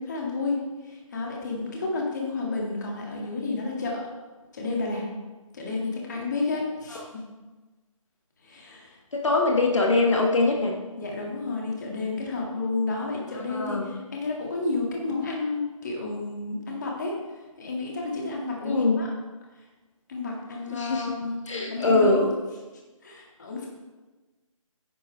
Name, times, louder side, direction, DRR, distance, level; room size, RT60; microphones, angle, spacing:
voice 1, 0.0-4.0 4.5-5.1 5.5-7.0 8.4-9.0 11.0-19.1 20.1-22.4 23.0-23.7, left 3 dB, 30° left, -1 dB, 1.9 m, -31 dB
voice 2, 9.1-10.7 13.5-13.9 18.6-19.0 20.7-21.1 21.5-22.2, left 3 dB, 60° left, 0 dB, 1.6 m, -22 dB
10.0 x 9.2 x 3.3 m, 1.2 s
figure-of-eight pair, 170°, 18 cm